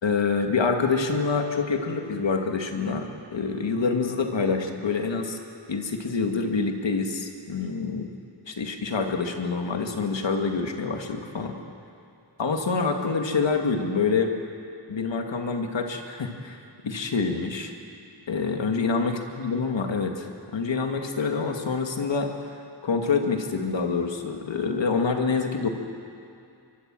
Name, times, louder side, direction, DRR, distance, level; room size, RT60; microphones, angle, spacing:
voice 1, 0.0-5.4 5.7-8.1 8.5-11.6 12.4-14.3 14.9-17.7 18.3-20.3 20.5-22.3 22.8-25.7, left 4 dB, 85° left, 3 dB, 2.3 m, -26 dB
24.5 x 24.0 x 7.7 m, 2.5 s
cardioid pair, 50°, 43 cm